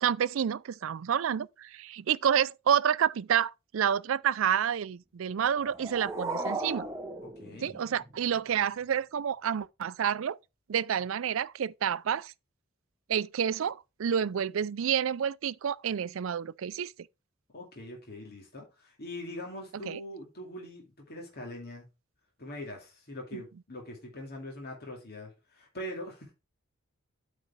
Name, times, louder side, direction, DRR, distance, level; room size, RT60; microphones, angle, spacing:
voice 1, 0.0-6.9 7.6-10.4 10.7-12.3 13.1-16.9 19.9-20.0 23.3-23.4, right 8 dB, 70° right, 0.4 m, -29 dB
sound 1, 5.4-8.4, right 2 dB, 15° right, 0.8 m, -37 dB
voice 2, 7.2-7.8 17.5-21.9 22.4-26.3, left 1 dB, 50° left, 2.4 m, -42 dB
8.4 x 4.9 x 4.6 m
head